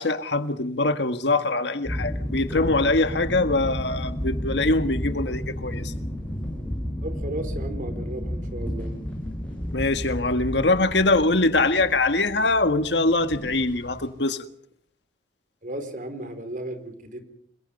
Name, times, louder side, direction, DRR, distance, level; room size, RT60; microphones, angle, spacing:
voice 1, 0.0-5.9 9.7-14.4, left 2 dB, 65° left, 1.6 m, -23 dB
sound 1, 1.8-14.1, equal, 5° left, 7.7 m, -32 dB
voice 2, 7.0-8.9 15.6-17.2, right 1 dB, 50° right, 4.7 m, -34 dB
29.5 x 22.0 x 5.3 m
head